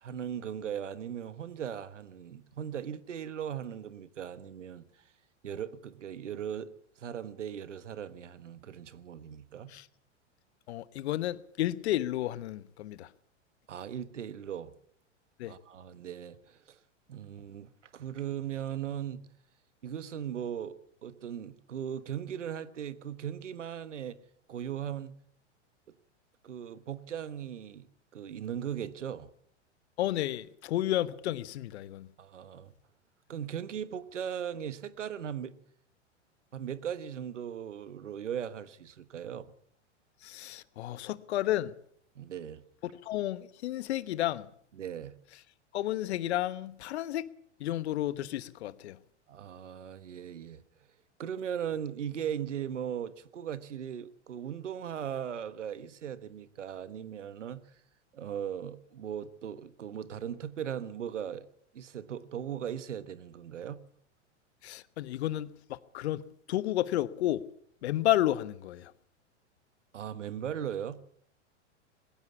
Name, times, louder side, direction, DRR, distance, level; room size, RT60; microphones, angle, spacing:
voice 1, 0.0-4.8 5.4-6.7 7.0-9.7 13.7-14.7 15.4-16.8 17.1-19.2 19.8-20.8 21.0-24.2 24.5-25.1 26.4-27.9 28.1-29.3 32.2-32.7 33.3-35.6 36.5-39.5 42.1-42.6 44.8-45.1 49.3-50.6 51.2-57.6 58.1-61.5 61.7-63.8 69.9-71.0, right 9 dB, 80° right, 1.5 m, -38 dB
voice 2, 10.7-13.1 15.4-15.5 30.0-32.1 40.2-41.7 42.8-44.5 45.7-47.3 47.6-49.0 64.6-67.4 67.8-68.9, left 14 dB, 60° left, 1.2 m, -32 dB
21.0 x 16.0 x 8.5 m
hypercardioid pair, 100°, 36 cm